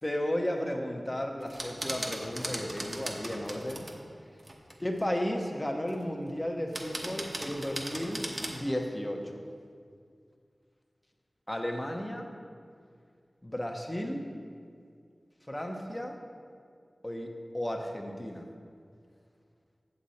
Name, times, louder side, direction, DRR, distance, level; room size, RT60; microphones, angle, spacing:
voice 1, 0.0-3.9 4.8-8.2 8.5-9.4 11.5-12.3 13.4-14.2 15.5-16.2 17.0-18.4, left 1 dB, 20° left, 2 dB, 0.9 m, -34 dB
sound 1, 1.4-4.0 4.4-5.0 5.9-6.3 6.7-8.7, right 1 dB, 40° right, 1.0 m, -38 dB
7.9 x 7.5 x 4.2 m, 2.2 s
wide cardioid pair, 65°, 0 cm